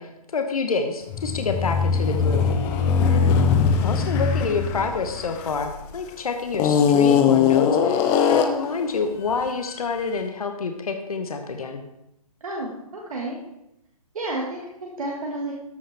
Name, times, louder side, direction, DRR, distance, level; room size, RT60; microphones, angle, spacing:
voice 1, 0.0-2.5 3.1-3.3 3.8-11.8, left 4 dB, 70° left, 6 dB, 0.9 m, -28 dB
sound 1, 1.1-5.9 6.5-8.7, left 6 dB, 15° left, 0.4 m, -20 dB
voice 2, 12.4-13.4 14.1-15.5, right 2 dB, 65° right, -2 dB, 1.6 m, -31 dB
13.5 x 5.4 x 3.3 m, 0.86 s
figure-of-eight pair, 140°, 19 cm